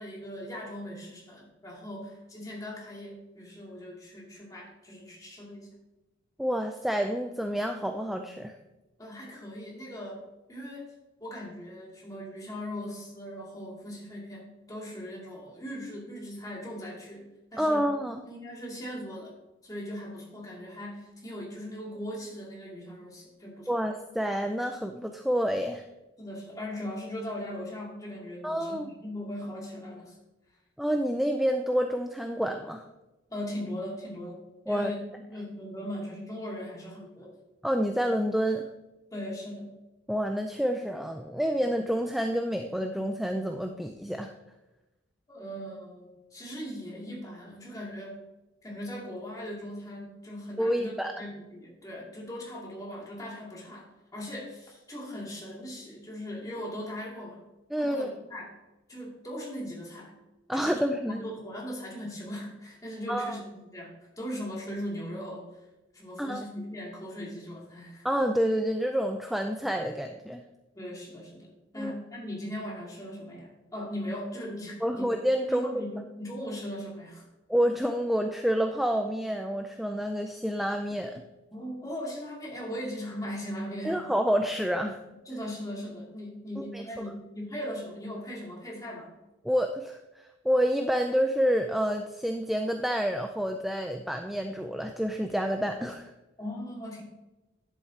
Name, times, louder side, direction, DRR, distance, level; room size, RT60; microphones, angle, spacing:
voice 1, 0.0-5.7 9.0-10.2 10.5-10.9 11.2-17.9 18.2-19.3 19.6-23.8 26.2-30.2 33.3-34.4 34.7-35.0 35.3-37.3 39.1-39.7 45.3-48.2 48.6-57.4 57.8-58.5 58.9-60.1 60.5-65.5 65.9-68.1 70.7-71.5 71.7-75.1 75.5-77.2 81.5-84.0 85.3-89.1 96.4-97.0, equal, 20° left, -4 dB, 2.5 m, -39 dB
voice 2, 6.4-8.6 17.6-18.2 23.7-25.8 28.4-28.9 30.8-32.8 34.7-34.9 37.6-38.7 40.1-44.3 50.6-51.1 57.7-58.1 60.5-61.2 63.1-63.4 66.2-66.4 68.0-70.4 71.8-71.9 74.8-75.7 77.5-81.1 83.8-85.0 86.6-86.9 89.4-96.1, equal, ahead, 4 dB, 0.4 m, -28 dB
10.5 x 8.0 x 2.8 m, 1.0 s
head